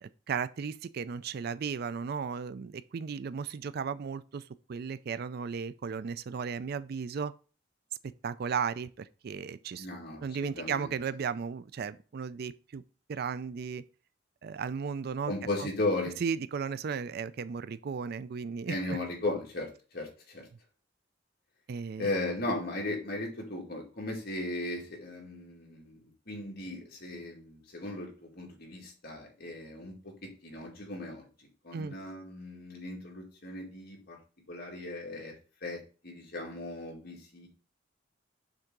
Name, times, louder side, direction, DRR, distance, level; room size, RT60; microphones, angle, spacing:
voice 1, 0.0-4.4 4.7-7.3 8.2-9.9 10.2-12.8 13.1-13.8 14.4-15.3 15.6-15.7 16.2-19.0 21.7-22.1 31.7-31.9, right 6 dB, 55° right, 0.4 m, -35 dB
voice 2, 9.8-10.9 15.3-16.2 18.7-20.5 22.0-34.2 34.5-35.3 35.6-37.5, left 2 dB, 55° left, 2.2 m, -37 dB
6.5 x 3.6 x 5.9 m
head